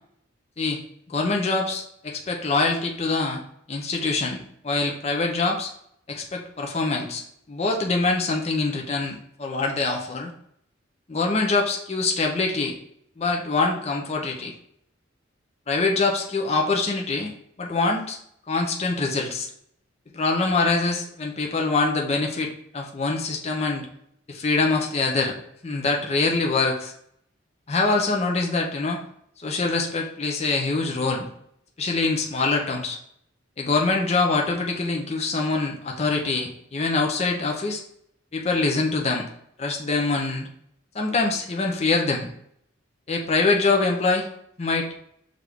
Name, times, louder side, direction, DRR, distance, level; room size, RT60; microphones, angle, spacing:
voice 1, 1.1-3.4 3.7-5.7 6.1-7.2 7.5-10.3 11.1-12.7 13.2-14.5 15.7-17.3 17.6-18.2 18.5-19.5 20.1-23.9 24.3-25.4 25.6-26.9 27.7-29.0 29.4-31.3 31.8-33.0 33.6-37.8 38.3-39.2 39.6-40.5 40.9-42.3 43.1-44.3 44.6-44.9, left 3 dB, 30° left, 1 dB, 0.5 m, -24 dB
6.1 x 2.5 x 3.4 m, 0.70 s
head